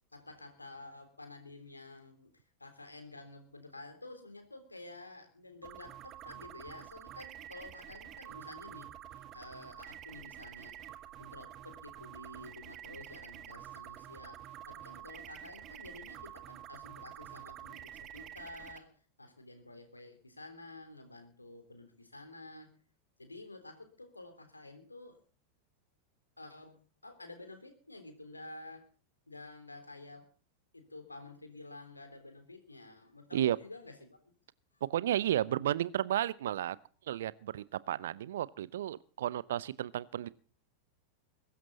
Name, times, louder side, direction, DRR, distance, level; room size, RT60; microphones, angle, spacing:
voice 1, 0.1-8.9 9.3-10.8 11.2-22.7 23.2-25.2 26.4-28.8 29.3-30.3 30.7-34.2 34.7-34.8, left 2 dB, 80° left, 8 dB, 3.5 m, -50 dB
sound 1, 5.6-18.8, right 11 dB, 35° right, 1.5 m, -48 dB
voice 2, 34.9-36.8 37.1-40.3, right 12 dB, 60° right, 20 dB, 0.7 m, -32 dB
22.0 x 12.5 x 4.1 m, 0.39 s
figure-of-eight pair, 90°, 0 cm